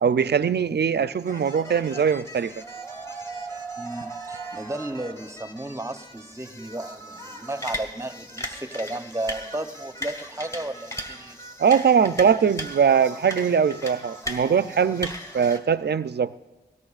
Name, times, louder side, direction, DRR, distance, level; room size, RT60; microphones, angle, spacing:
voice 1, 0.0-2.6 11.6-16.3, right 7 dB, 70° right, 14 dB, 0.4 m, -21 dB
sound 1, 1.2-15.6, right 1 dB, 15° left, 1.7 m, -37 dB
voice 2, 3.8-11.4, right 1 dB, 15° right, 9 dB, 0.8 m, -34 dB
21.5 x 18.0 x 2.4 m, 1.1 s
cardioid pair, 45°, 18 cm